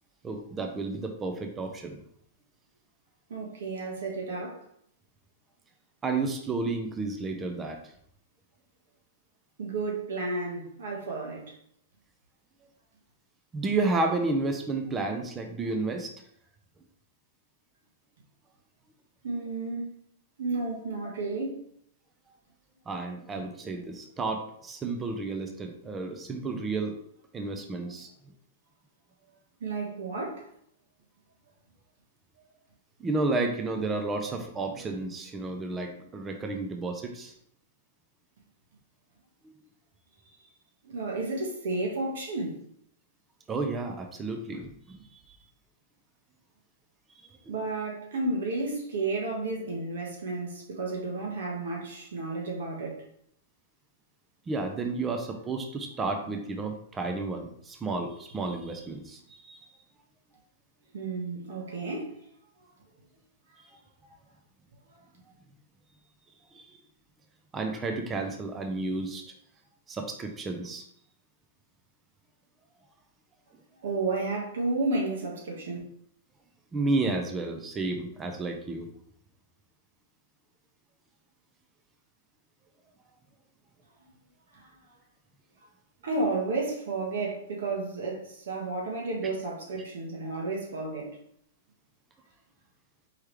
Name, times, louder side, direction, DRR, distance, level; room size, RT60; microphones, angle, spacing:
voice 1, 0.2-2.0 6.0-7.8 13.5-16.1 22.9-26.9 27.3-28.1 33.0-37.3 39.4-39.5 43.5-45.0 47.5-47.6 54.5-59.6 66.5-66.8 67.5-69.2 69.9-70.8 76.7-78.9, right 3 dB, 10° right, 0.4 m, -31 dB
voice 2, 3.3-4.6 9.6-11.5 19.2-19.9 20.4-21.6 29.6-30.5 40.8-42.6 47.5-53.0 60.9-62.1 73.8-75.8 84.5-84.7 86.0-91.2, right 3 dB, 75° right, 1.4 m, -32 dB
4.7 x 3.1 x 3.4 m
supercardioid pair, 170°, 0 cm